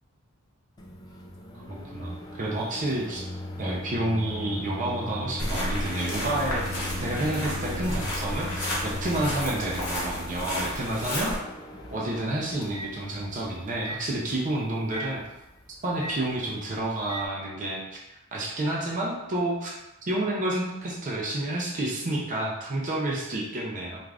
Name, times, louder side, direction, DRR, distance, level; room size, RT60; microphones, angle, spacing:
Microwave oven, 0.8-17.3, left 1 dB, 20° left, 0.3 m, -39 dB
voice 1, 1.7-3.3 3.6-11.3 11.9-15.2 15.8-18.0 18.3-19.7 20.0-24.0, right 1 dB, 35° right, -3 dB, 0.5 m, -30 dB
sound 1, 5.4-11.4, left 1 dB, 75° left, 1.0 m, -32 dB
sound 2, 5.5-10.3, right 1 dB, ahead, 0.9 m, -43 dB
2.4 x 2.4 x 3.3 m, 0.95 s
head